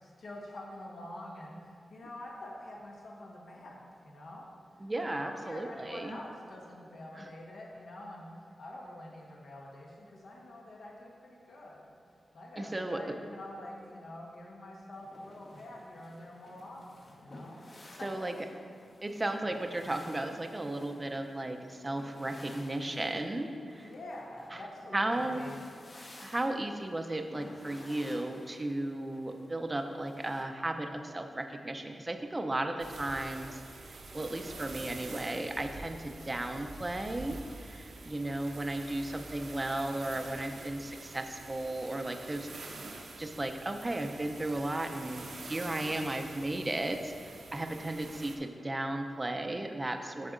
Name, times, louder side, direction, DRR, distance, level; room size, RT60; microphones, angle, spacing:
voice 1, 0.0-4.5 5.0-11.9 12.3-17.6 17.9-18.2 23.8-25.6, left 1 dB, 70° left, -2 dB, 1.4 m, -46 dB
voice 2, 4.8-6.2 7.2-7.3 12.6-13.2 18.0-18.3 19.0-23.9 24.5-24.6 24.9-25.4 26.2-33.6 34.1-42.5 43.2-50.3, right 1 dB, 20° right, 5 dB, 0.5 m, -35 dB
sound 1, 14.9-30.4, left 1 dB, 35° left, 0.9 m, -54 dB
sound 2, 32.8-48.4, right 3 dB, 75° right, 0.7 m, -47 dB
8.0 x 7.0 x 3.8 m, 2.4 s
wide cardioid pair, 140°, 0 cm